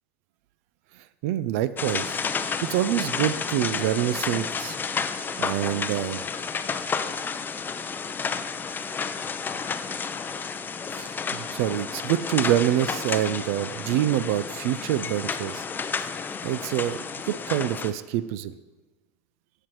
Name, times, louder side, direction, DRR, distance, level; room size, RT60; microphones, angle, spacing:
voice 1, 1.2-4.8 5.1-6.2 11.0-15.6 16.4-18.6, right 12 dB, 75° right, 15 dB, 0.4 m, -26 dB
sound 1, 1.8-17.9, left 5 dB, 25° left, 0.5 m, -31 dB
12.0 x 6.6 x 3.0 m, 1.2 s
hypercardioid pair, 85°, 8 cm